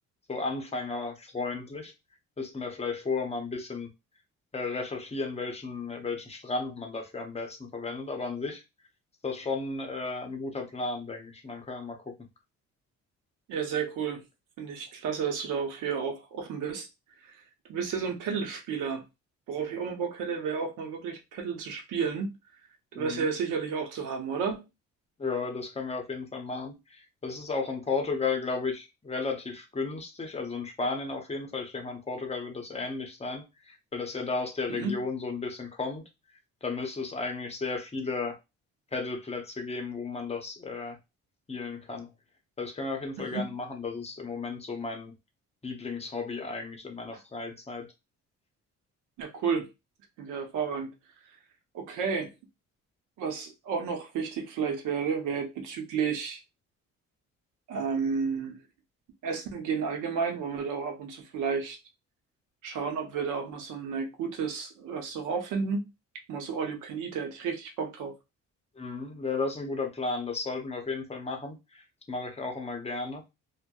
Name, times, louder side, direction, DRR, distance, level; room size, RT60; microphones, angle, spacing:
voice 1, 0.3-1.9 2.4-3.9 4.5-8.6 9.2-12.1 22.9-23.3 25.2-36.0 36.6-38.4 38.9-41.0 41.5-42.1 42.6-45.1 45.6-47.9 68.8-73.2, left 4 dB, 20° left, 0.7 m, -34 dB
voice 2, 13.5-14.2 14.6-16.9 17.2-17.3 17.7-19.0 19.5-22.3 22.9-24.6 34.8-35.0 43.2-43.5 49.2-49.7 50.2-50.9 51.7-52.3 53.2-56.4 57.7-58.6 59.2-61.8 62.6-65.8 66.3-68.1, right 6 dB, 90° right, 0.7 m, -32 dB
2.6 x 2.1 x 2.3 m
cardioid pair, 90°, 30 cm